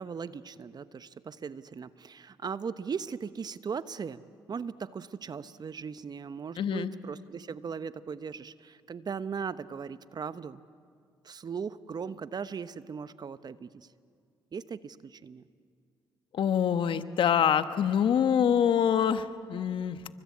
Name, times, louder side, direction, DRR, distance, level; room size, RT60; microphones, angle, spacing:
voice 1, 0.0-4.2 4.5-10.6 11.2-13.9 14.5-15.4, right 6 dB, 45° right, 14 dB, 1.0 m, -38 dB
voice 2, 6.6-6.9 16.3-20.0, left 8 dB, 65° left, 11 dB, 1.3 m, -25 dB
29.0 x 24.5 x 8.5 m, 2.2 s
supercardioid pair, 55°, 9 cm